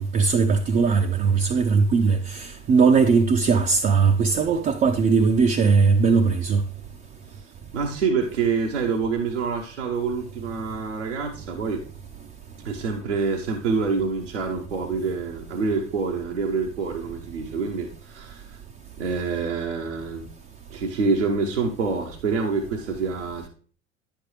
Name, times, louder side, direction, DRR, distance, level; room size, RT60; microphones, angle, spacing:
voice 1, 0.0-6.6, right 5 dB, 25° right, 0.5 m, -19 dB
voice 2, 7.7-11.8 12.6-18.6 19.0-20.3 20.7-23.5, right 4 dB, 75° right, 0.9 m, -26 dB
9.5 x 6.9 x 3.1 m
figure-of-eight pair, 70°, 35 cm